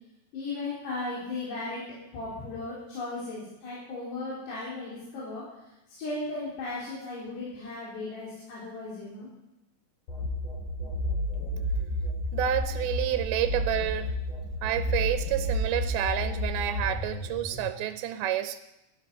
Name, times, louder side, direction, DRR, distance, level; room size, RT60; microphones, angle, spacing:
voice 1, 0.3-5.4 5.9-9.3, left 2 dB, 75° left, -8 dB, 5.9 m, -36 dB
sound 1, 10.1-17.7, left 1 dB, 50° left, 6.1 m, -31 dB
voice 2, 12.3-14.2 14.6-18.6, right 11 dB, 75° right, 10 dB, 2.4 m, -29 dB
18.0 x 11.5 x 5.4 m, 0.92 s
omnidirectional pair, 4.8 m